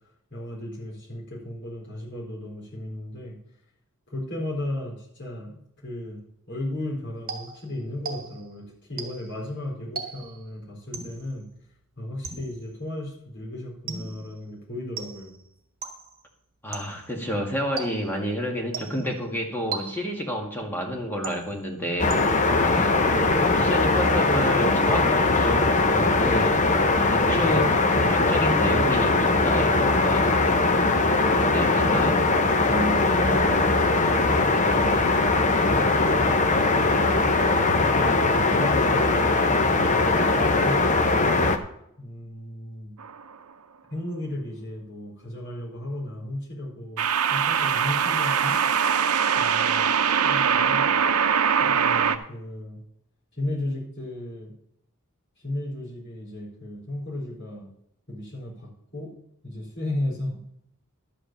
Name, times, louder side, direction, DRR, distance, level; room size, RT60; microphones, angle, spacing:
voice 1, 0.3-3.4 4.1-6.2 6.5-11.5 12.0-15.4 23.0-23.4 27.4-27.7 31.8-34.9 37.7-39.5 39.8-41.2 42.0-42.9 43.9-47.0 47.3-48.6 49.4-49.9 50.2-51.2 51.6-52.8 53.3-54.5 55.4-57.7 58.1-59.1 59.4-60.4, left 1 dB, 55° left, -3 dB, 4.0 m, -35 dB
sound 1, 7.3-8.6 9.0-9.4 10.0-10.5 10.9-11.3 12.2-12.7 13.9-14.3 15.0-15.4 15.8-16.2 16.7-17.1 17.8-18.3 18.7-19.2 19.7-20.3 21.2-21.7 22.1-22.6, right 5 dB, 40° right, 2.1 m, -37 dB
voice 2, 16.6-22.2 22.6-23.0 23.5-26.6 26.9-30.4 31.0-32.2, equal, 10° left, 0 dB, 2.1 m, -29 dB
sound 2, 22.0-41.6, left 3 dB, 35° left, 0.8 m, -21 dB
sound 3, 43.0-43.3 47.0-52.2, right 7 dB, 85° right, 0.7 m, -22 dB
12.5 x 5.0 x 7.5 m, 0.75 s
head